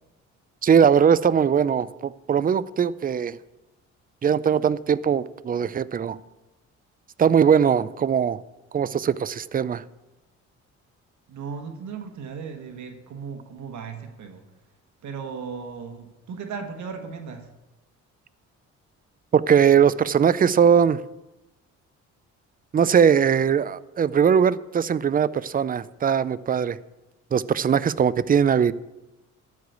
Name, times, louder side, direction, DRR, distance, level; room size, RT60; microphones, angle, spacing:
voice 1, 0.6-3.4 4.2-6.2 7.2-8.4 8.7-9.8 19.3-21.0 22.7-26.8 27.3-28.7, right 7 dB, 30° right, 17 dB, 0.4 m, -20 dB
voice 2, 11.3-14.4 15.0-17.5, right 5 dB, 70° right, 5 dB, 1.5 m, -36 dB
12.5 x 5.0 x 8.1 m, 1.0 s
cardioid pair, 90°, 30 cm